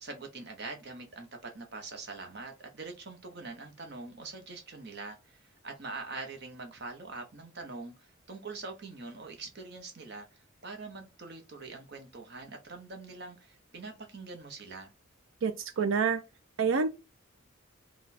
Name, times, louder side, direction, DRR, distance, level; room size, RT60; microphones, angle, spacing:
voice 1, 0.0-14.9, right 3 dB, 55° right, 0.8 m, -44 dB
voice 2, 15.4-16.2 16.6-16.9, right 5 dB, 75° right, 0.4 m, -27 dB
4.2 x 2.3 x 4.1 m
head